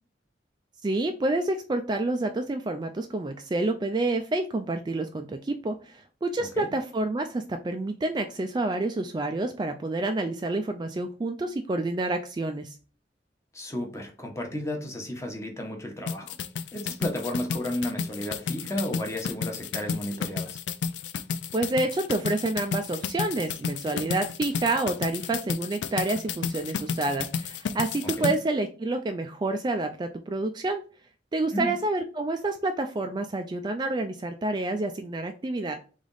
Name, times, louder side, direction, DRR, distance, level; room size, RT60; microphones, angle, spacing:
voice 1, 0.8-12.7 21.5-30.8 31.3-35.8, right 2 dB, 25° right, 6 dB, 0.3 m, -28 dB
voice 2, 13.5-16.4 16.7-20.6 28.2-28.3 31.5-31.7, left 1 dB, 15° left, 2 dB, 1.0 m, -33 dB
sound 1, 16.1-28.4, left 6 dB, 85° left, 0.4 m, -32 dB
3.6 x 3.4 x 3.9 m, 0.37 s
head